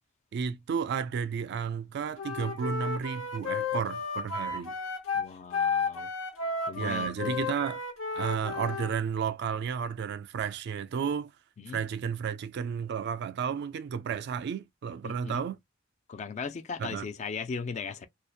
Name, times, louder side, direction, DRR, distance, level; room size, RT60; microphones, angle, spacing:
voice 1, 0.3-4.7 6.8-7.8 8.1-11.3 11.7-15.6 16.8-17.1, right 7 dB, 60° right, 0.3 m, -32 dB
Wind instrument woodwind instrument, 2.2-8.9, left 4 dB, 85° left, 0.8 m, -33 dB
voice 2, 5.1-6.1 6.7-7.5 11.6-11.8 15.0-15.4 16.1-18.1, left 5 dB, 35° left, 0.3 m, -38 dB
2.6 x 2.1 x 2.3 m
head